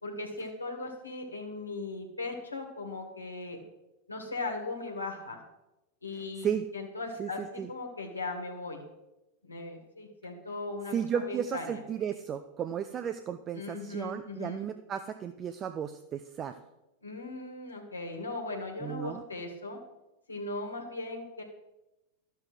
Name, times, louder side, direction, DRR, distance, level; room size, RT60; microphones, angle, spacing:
voice 1, 0.0-3.6 4.1-5.4 6.0-8.8 9.4-11.8 13.5-14.7 17.0-19.8 20.3-21.4, left 3 dB, 80° left, 1 dB, 1.6 m, -38 dB
voice 2, 6.2-6.7 7.2-7.3 7.6-7.7 10.9-16.6 18.8-19.2, right 8 dB, 30° right, 9 dB, 0.5 m, -34 dB
12.0 x 6.9 x 4.7 m, 0.95 s
figure-of-eight pair, 90°, 0 cm